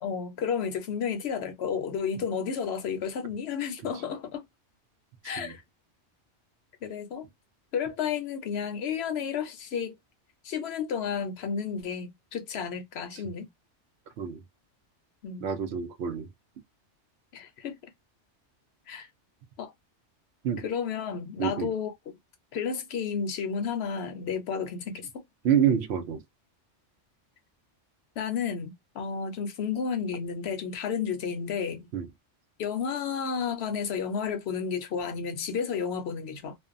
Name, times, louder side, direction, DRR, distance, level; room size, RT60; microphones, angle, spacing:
voice 1, 0.0-4.4 5.2-5.6 6.8-7.3 7.7-10.0 10.4-13.5 15.2-15.5 17.3-17.8 18.9-19.1 19.6-19.7 20.6-22.1 22.5-25.2 28.2-31.9 32.6-36.6, left 6 dB, 65° left, 0.8 m, -32 dB
voice 2, 15.4-16.3 20.4-20.6 21.4-21.7 25.4-26.2 31.9-32.1, right 8 dB, 70° right, 0.8 m, -27 dB
2.5 x 2.1 x 2.4 m
omnidirectional pair, 1.2 m